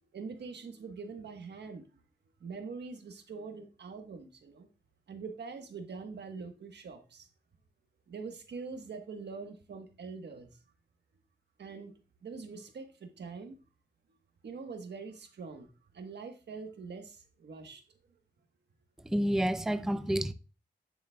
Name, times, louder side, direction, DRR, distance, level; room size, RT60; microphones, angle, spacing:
voice 1, 0.0-1.9 2.4-4.7 5.1-7.3 8.1-10.5 11.6-11.9 12.2-13.6 14.4-17.8, right 4 dB, 90° right, 1.3 m, -44 dB
voice 2, 19.0-20.3, right 1 dB, 5° right, 0.4 m, -29 dB
9.6 x 7.9 x 2.3 m
wide cardioid pair, 115°, 17 cm